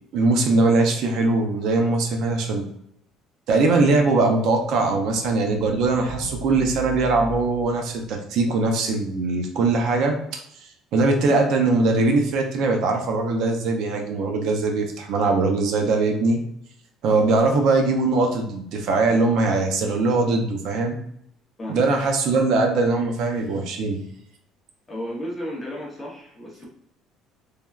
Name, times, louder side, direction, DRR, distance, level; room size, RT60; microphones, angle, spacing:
voice 1, 0.1-2.6 3.5-16.4 17.0-21.0 21.7-24.0, right 3 dB, 55° right, 3 dB, 0.4 m, -21 dB
sound 1, 3.9-8.5, right 1 dB, 10° right, 0.9 m, -38 dB
voice 2, 21.6-21.9 24.9-26.7, equal, 15° left, -3 dB, 0.7 m, -33 dB
3.2 x 2.2 x 2.3 m, 0.72 s
cardioid pair, 175°, 0 cm